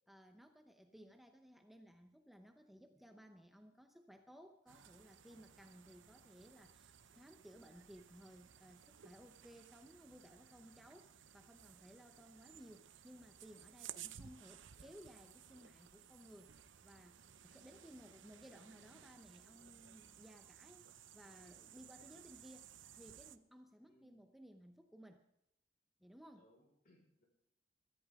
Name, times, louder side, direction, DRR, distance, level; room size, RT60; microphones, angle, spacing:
voice 1, 0.1-25.2 26.0-26.5, equal, ahead, 5 dB, 0.8 m, -59 dB
sound 1, 4.7-23.4, right 9 dB, 90° right, 0.7 m, -58 dB
voice 2, 17.7-18.0 23.9-24.2 26.3-27.2, equal, 50° left, 1 dB, 4.8 m, -71 dB
22.0 x 14.0 x 3.6 m, 0.81 s
head